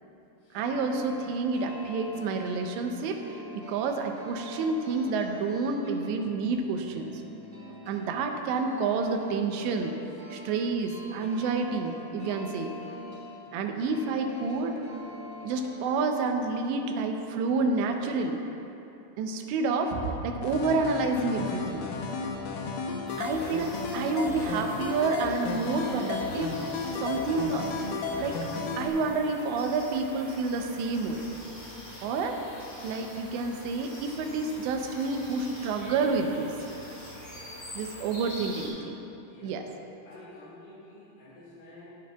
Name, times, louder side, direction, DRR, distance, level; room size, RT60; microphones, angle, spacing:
sound 1, 0.5-16.0, equal, 25° right, 1.7 m, -44 dB
voice 1, 0.5-7.1 7.9-9.9 10.3-12.7 13.5-14.8 15.4-18.4 19.2-21.9 23.2-26.5 27.0-27.7 28.2-28.4 28.8-31.2 32.0-32.4 32.8-36.5 37.8-39.0 39.4-39.6, right 4 dB, 85° right, 4 dB, 2.9 m, -29 dB
sound 2, 20.4-28.9, left 4 dB, 85° left, 2.0 m, -33 dB
sound 3, 23.1-38.7, left 1 dB, 25° left, 2.3 m, -44 dB
voice 2, 40.0-41.9, left 2 dB, 60° left, -12 dB, 3.6 m, -50 dB
21.5 x 7.6 x 2.3 m, 2.9 s
omnidirectional pair, 5.1 m